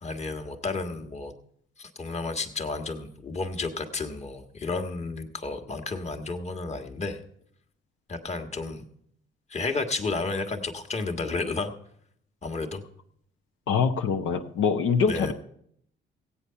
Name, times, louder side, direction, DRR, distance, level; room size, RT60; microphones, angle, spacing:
voice 1, 0.0-1.3 1.8-7.2 8.1-8.8 9.5-11.7 12.4-12.8 15.0-15.3, left 3 dB, 35° left, 5 dB, 1.4 m, -32 dB
voice 2, 13.7-15.3, left 6 dB, 80° left, 4 dB, 0.9 m, -24 dB
16.0 x 8.6 x 5.6 m, 0.69 s
cardioid pair, 90°, 20 cm